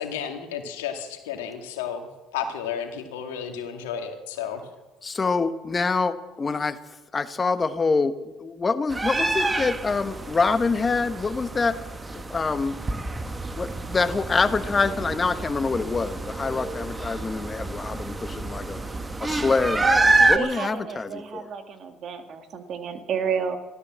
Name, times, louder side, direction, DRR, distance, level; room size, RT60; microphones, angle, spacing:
voice 1, 0.0-4.6, left 8 dB, 90° left, 5 dB, 2.0 m, -32 dB
voice 2, 5.0-6.7 7.1-8.1 8.4-11.8 12.1-12.7 13.5-18.8 19.2-19.8 20.3-21.1, left 4 dB, 30° left, 12 dB, 1.2 m, -25 dB
sound 1, 8.9-20.4, right 2 dB, 20° right, 1.4 m, -27 dB
voice 3, 19.8-23.6, right 6 dB, 55° right, 7 dB, 2.0 m, -31 dB
15.0 x 13.0 x 7.5 m, 1.1 s
supercardioid pair, 75°, 0 cm